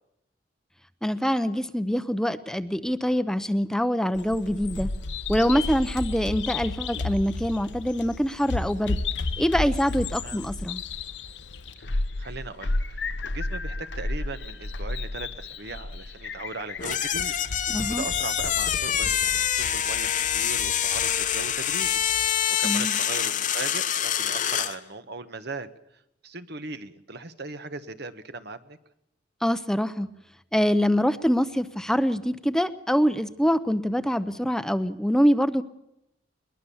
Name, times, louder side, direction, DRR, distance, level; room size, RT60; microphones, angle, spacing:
voice 1, 1.0-4.9 5.3-9.0 9.4-10.8 17.7-18.0 22.6-22.9 29.4-30.1 30.5-35.6, equal, 5° left, 12 dB, 0.7 m, -24 dB
Bird vocalization bird call bird song, 4.2-22.3, left 3 dB, 75° left, 1.0 m, -33 dB
voice 2, 11.8-17.3 17.6-25.7 26.2-28.8, right 3 dB, 65° right, 10 dB, 1.4 m, -39 dB
sound 1, 16.8-24.8, left 9 dB, 45° left, 1.0 m, -26 dB
21.5 x 20.5 x 7.2 m, 0.83 s
head